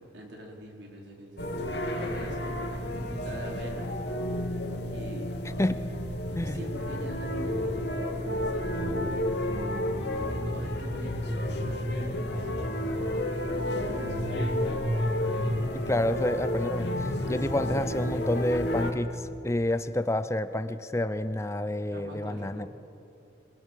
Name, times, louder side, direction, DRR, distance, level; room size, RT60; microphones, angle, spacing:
voice 1, 0.0-3.9 4.9-5.4 6.4-9.4 9.7-14.8 21.9-22.7, equal, 80° right, 0 dB, 4.4 m, -45 dB
sound 1, 1.4-18.9, left 1 dB, 65° left, 2.4 m, -31 dB
voice 2, 15.7-22.7, left 1 dB, 15° left, 12 dB, 0.6 m, -29 dB
26.5 x 21.0 x 7.5 m, 2.6 s
head